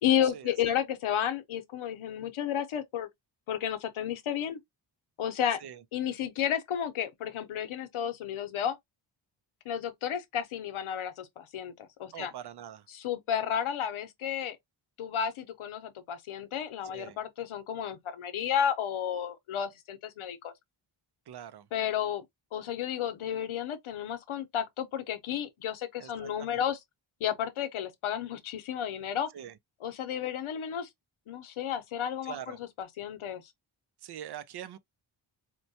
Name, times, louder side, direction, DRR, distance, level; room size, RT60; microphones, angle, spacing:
voice 1, 0.0-3.1 3.5-4.6 5.2-5.6 5.9-8.8 9.6-12.3 12.9-14.6 15.0-20.5 21.7-22.2 22.5-26.8 27.2-29.3 29.8-30.9 31.3-33.4, left 9 dB, 85° left, 0.8 m, -32 dB
voice 2, 12.1-12.9 16.8-17.2 21.3-21.7 26.0-26.6 29.3-29.6 32.2-32.6 34.0-34.8, right 10 dB, 55° right, 0.5 m, -43 dB
4.4 x 2.2 x 2.7 m
wide cardioid pair, 125°, 47 cm